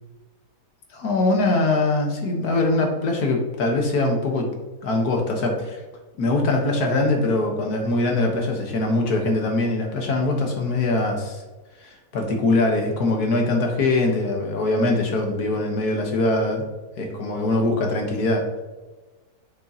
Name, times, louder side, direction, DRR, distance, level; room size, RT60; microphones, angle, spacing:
voice 1, 0.9-4.5 4.8-5.8 6.2-11.4 11.8-16.6 17.0-18.4, left 2 dB, 70° left, 2 dB, 1.7 m, -22 dB
7.4 x 6.1 x 2.9 m, 1.2 s
omnidirectional pair, 1.8 m